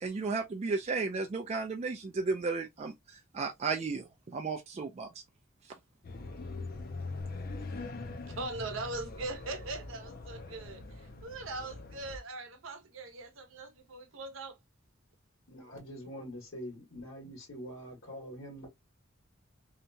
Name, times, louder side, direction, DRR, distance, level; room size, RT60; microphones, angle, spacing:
voice 1, 0.0-5.2, right 4 dB, 35° right, 0.3 m, -34 dB
sound 1, 6.0-12.2, left 3 dB, 50° left, 0.5 m, -42 dB
voice 2, 8.3-14.6, right 2 dB, 80° right, 0.8 m, -41 dB
voice 3, 15.5-18.7, equal, 80° left, 1.3 m, -44 dB
2.8 x 2.2 x 2.6 m
head